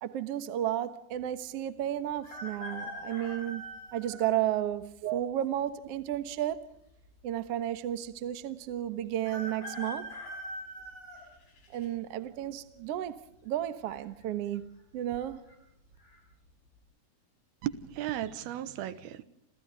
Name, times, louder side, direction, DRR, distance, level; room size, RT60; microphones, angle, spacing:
voice 1, 0.0-3.6 3.9-6.6 7.2-10.1 11.7-15.5, right 12 dB, 60° right, 1.6 m, -33 dB
sound 1, 2.2-4.3 4.9-5.0 6.1-6.8 7.1-7.2 7.3-7.4 9.2-11.9 12.4-12.8 13.9-14.3 14.5-14.6 15.2-15.5 16.0-16.2, equal, 70° left, 7.6 m, -42 dB
voice 2, 17.6-19.2, right 13 dB, 80° right, 3.1 m, -35 dB
29.5 x 28.0 x 3.5 m
omnidirectional pair, 4.5 m